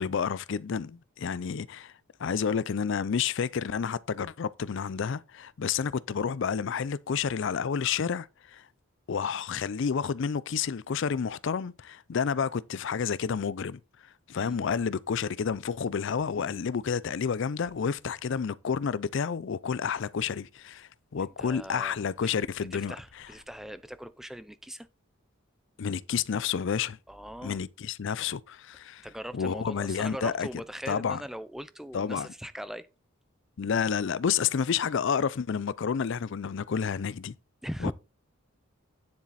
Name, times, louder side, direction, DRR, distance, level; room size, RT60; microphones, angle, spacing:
voice 1, 0.0-1.9 2.2-8.7 9.1-13.8 14.3-23.0 25.8-27.0 27.4-29.1 29.3-30.5 30.9-31.2 31.9-32.3 33.6-37.3 37.8-37.9, left 6 dB, 60° left, 0.4 m, -30 dB
sound 1, 14.4-24.3, left 1 dB, 85° left, 1.6 m, -64 dB
voice 2, 21.2-22.0 22.7-24.9 27.1-27.6 29.0-32.9 37.6-37.9, equal, ahead, 0.5 m, -40 dB
9.8 x 7.3 x 4.1 m
head